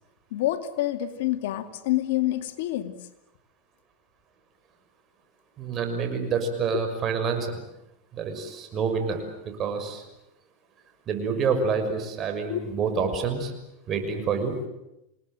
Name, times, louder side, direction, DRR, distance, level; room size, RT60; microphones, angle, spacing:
voice 1, 0.3-3.0 6.7-6.8 12.4-12.6, left 14 dB, 75° left, 7 dB, 2.5 m, -27 dB
voice 2, 5.6-7.6 8.1-10.0 11.1-13.5 13.9-14.5, right 5 dB, 35° right, 7 dB, 6.1 m, -27 dB
28.5 x 19.0 x 9.3 m, 0.91 s
supercardioid pair, 130°, 0 cm